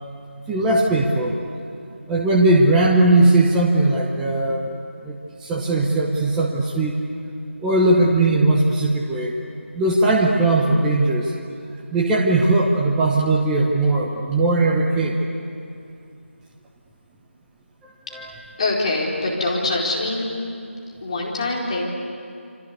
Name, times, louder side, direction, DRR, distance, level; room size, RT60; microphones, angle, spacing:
voice 1, 0.5-1.4 2.1-4.7 5.0-7.0 7.6-9.3 9.7-11.3 11.9-15.2 17.8-18.3, right 2 dB, 5° right, -2 dB, 1.0 m, -19 dB
voice 2, 18.6-20.3 21.0-21.9, left 2 dB, 30° left, -3 dB, 4.4 m, -24 dB
28.0 x 25.0 x 8.3 m, 2.4 s
figure-of-eight pair, 165°, 7 cm